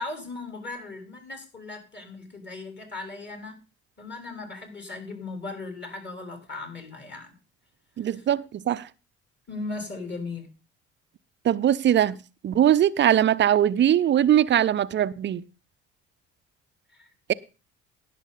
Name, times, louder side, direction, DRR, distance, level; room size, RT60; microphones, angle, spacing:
voice 1, 0.0-3.6 4.0-7.3 8.1-8.2 9.5-10.5 16.9-17.1, left 3 dB, 30° left, 3.7 m, -37 dB
voice 2, 8.0-8.9 11.4-12.2 12.4-15.4, right 10 dB, 30° right, 0.6 m, -21 dB
18.0 x 6.5 x 4.1 m
figure-of-eight pair, 50°, 36 cm